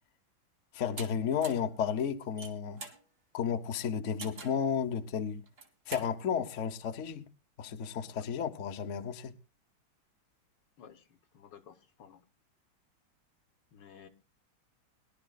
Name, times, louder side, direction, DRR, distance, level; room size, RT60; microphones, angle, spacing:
voice 1, 0.7-2.8 3.3-5.4 5.9-7.3 7.6-9.3, left 7 dB, 50° left, 1.0 m, -33 dB
sound 1, 1.0-1.1 1.4-1.7 2.2-3.0 4.2-4.6 5.5-6.1, right 3 dB, 40° right, 2.0 m, -44 dB
voice 2, 10.8-12.2 13.7-14.1, left 8 dB, 65° left, 1.5 m, -55 dB
21.5 x 11.5 x 2.3 m
omnidirectional pair, 2.2 m